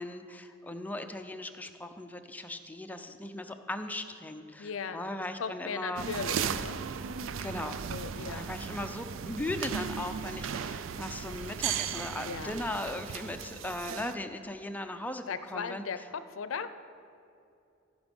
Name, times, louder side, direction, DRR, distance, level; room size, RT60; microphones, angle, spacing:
voice 1, 0.0-6.1 7.4-7.8 8.2-15.8, left 1 dB, 10° left, 6 dB, 0.5 m, -38 dB
voice 2, 4.6-5.0 5.4-6.8 7.9-8.5 12.2-12.6 15.3-16.7, left 6 dB, 85° left, 12 dB, 0.5 m, -37 dB
sound 1, 6.0-14.1, right 7 dB, 75° right, 0.4 m, -36 dB
15.0 x 5.0 x 5.3 m, 2.6 s
head